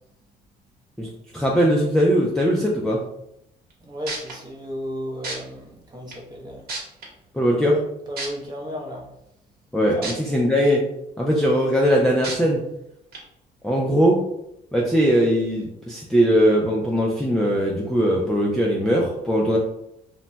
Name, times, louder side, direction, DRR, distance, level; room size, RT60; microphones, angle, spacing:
voice 1, 1.0-3.0 7.3-7.8 9.7-10.8 11.2-12.6 13.6-14.2 14.7-19.6, equal, 5° left, -4 dB, 0.4 m, -20 dB
sound 1, 3.7-3.8 4.1-4.3 5.2-5.3 6.1-6.2 6.7-7.0 8.2-8.3 10.0-10.1 10.6-10.7 12.2-12.3 13.1-13.2, right 3 dB, 65° right, 0.9 m, -30 dB
voice 2, 3.8-6.7 8.1-9.1 9.9-10.1, equal, 25° right, -1 dB, 0.8 m, -34 dB
2.1 x 2.1 x 3.8 m, 0.80 s
cardioid pair, 110°, 17 cm